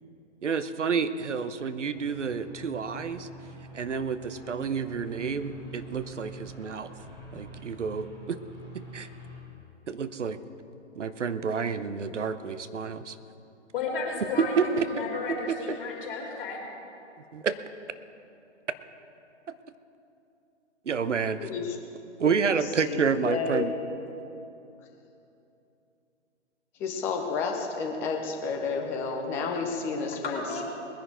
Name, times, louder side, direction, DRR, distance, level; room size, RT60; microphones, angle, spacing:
voice 1, 0.4-3.3 3.7-6.9 7.3-8.4 8.7-9.1 9.9-10.4 11.0-13.2 14.4-14.8 15.5-15.8 17.3-17.5 20.9-21.5 22.2-23.7, right 6 dB, 75° right, 12 dB, 1.0 m, -29 dB
sound 1, 1.9-9.4, right 2 dB, 15° right, 4.0 m, -46 dB
voice 2, 13.7-16.6 30.3-30.6, left 3 dB, 50° left, -3 dB, 3.6 m, -33 dB
voice 3, 21.4-21.8 22.2-22.3 22.8-23.7 26.8-30.6, left 4 dB, 5° left, 2 dB, 0.4 m, -31 dB
20.5 x 10.5 x 4.6 m, 2.8 s
figure-of-eight pair, 125°, 36 cm